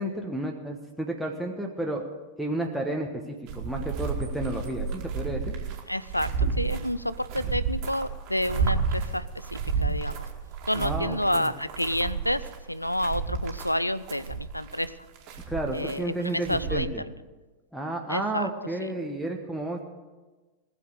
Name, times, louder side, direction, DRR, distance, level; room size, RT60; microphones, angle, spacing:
voice 1, 0.0-2.1 2.4-5.5 10.7-11.5 15.5-17.0 17.7-19.8, right 1 dB, ahead, 3 dB, 1.2 m, -32 dB
sound 1, 3.5-16.8, right 5 dB, 40° right, 2.0 m, -31 dB
voice 2, 5.9-10.2 10.7-15.1 15.7-16.9 18.1-18.5 18.8-18.9, left 1 dB, 90° left, 16 dB, 0.4 m, -29 dB
19.0 x 7.0 x 6.6 m, 1.2 s
figure-of-eight pair, 90°, 0 cm